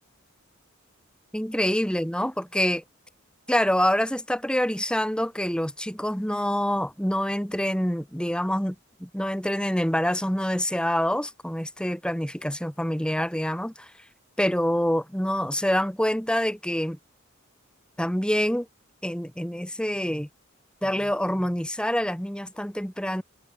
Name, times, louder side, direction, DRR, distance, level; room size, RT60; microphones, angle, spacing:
voice 1, 1.3-2.8 3.5-8.7 9.0-13.9 14.4-17.0 18.0-18.7 19.0-20.3 20.8-23.2, equal, 5° left, 3.4 m, -26 dB
head